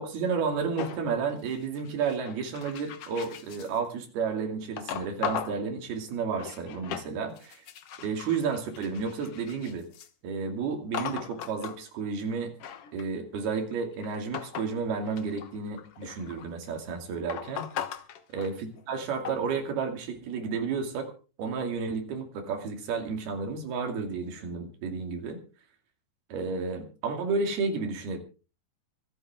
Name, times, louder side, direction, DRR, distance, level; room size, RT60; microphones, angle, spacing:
voice 1, 0.0-7.6 8.0-9.9 10.2-12.5 12.9-17.7 18.3-21.1 21.4-25.4 26.3-28.2, right 5 dB, 80° right, 4 dB, 4.5 m, -32 dB
sound 1, 0.8-3.8 4.8-5.6 6.1-7.1 7.4-10.1 10.9-11.8 12.3-14.8 15.1-16.6 17.3-18.9 19.2-19.5, left 9 dB, 75° left, 1.3 m, -38 dB
25.0 x 9.2 x 3.7 m, 0.36 s
omnidirectional pair, 4.4 m